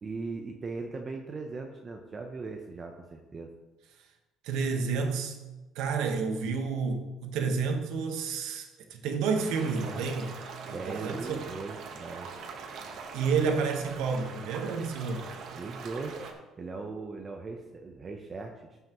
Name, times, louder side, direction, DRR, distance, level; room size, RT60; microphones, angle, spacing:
voice 1, 0.0-3.5 10.7-12.3 15.5-16.2 16.6-18.8, right 3 dB, 25° right, 3 dB, 0.7 m, -39 dB
voice 2, 4.4-5.4 5.7-10.3 10.7-11.4 13.1-15.3, right 5 dB, 80° right, 4 dB, 1.2 m, -30 dB
sound 1, 9.3-16.3, right 5 dB, 55° right, 1.1 m, -42 dB
14.5 x 5.7 x 3.0 m, 1.1 s
cardioid pair, 150°, 0 cm